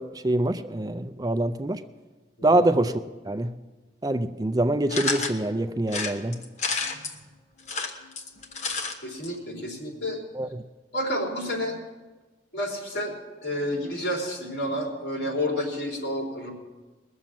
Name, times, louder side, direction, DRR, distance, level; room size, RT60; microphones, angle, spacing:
voice 1, 0.0-1.8 2.4-3.5 4.0-6.4 10.3-10.6, right 1 dB, 20° right, 10 dB, 0.4 m, -25 dB
sound 1, 4.9-5.4 5.9-7.1 7.6-8.9 9.2-9.3 9.5-9.6, left 4 dB, 40° left, 1.2 m, -30 dB
voice 2, 9.0-10.2 10.9-11.8 12.5-13.1 13.4-16.5, left 1 dB, 60° left, -1 dB, 3.8 m, -30 dB
20.0 x 7.2 x 7.5 m, 1.2 s
head